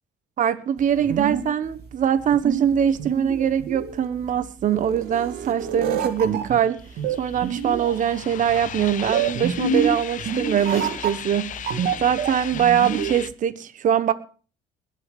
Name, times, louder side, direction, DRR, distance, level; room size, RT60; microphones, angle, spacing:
voice 1, 0.4-6.8 7.2-11.5 12.0-14.1, right 9 dB, 50° right, 1.2 m, -22 dB
sound 1, 0.8-13.3, right 6 dB, 70° right, 2.1 m, -28 dB
sound 2, 6.2-13.3, left 10 dB, 50° left, 0.7 m, -37 dB
20.5 x 7.9 x 5.2 m
cardioid pair, 110°, 17 cm